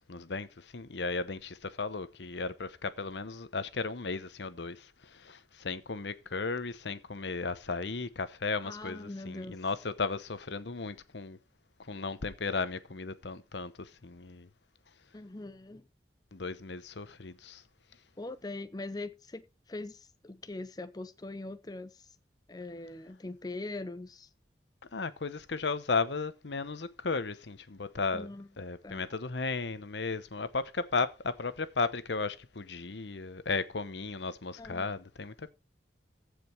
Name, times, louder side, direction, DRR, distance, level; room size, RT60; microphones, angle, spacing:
voice 1, 0.1-11.4 11.8-14.5 16.3-17.6 24.9-28.3 28.6-35.5, left 4 dB, 75° left, 0.9 m, -35 dB
voice 2, 8.6-9.6 15.1-15.8 18.2-22.2 22.5-24.3 28.1-28.5 28.8-29.0 34.6-34.9, left 2 dB, 20° left, 0.6 m, -42 dB
15.0 x 5.1 x 4.5 m
head